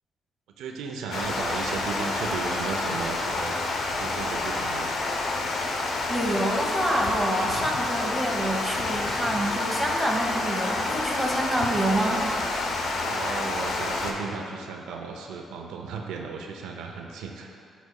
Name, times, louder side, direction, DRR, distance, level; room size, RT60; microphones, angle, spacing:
voice 1, 0.6-3.6 3.9-4.9 13.0-17.5, right 5 dB, 85° right, 2 dB, 0.5 m, -35 dB
Water, 1.1-14.1, left 2 dB, 65° left, 0.7 m, -29 dB
voice 2, 6.1-12.2, right 1 dB, ahead, -2 dB, 1.1 m, -27 dB
10.5 x 4.0 x 2.2 m, 2.6 s
cardioid pair, 90°, 0 cm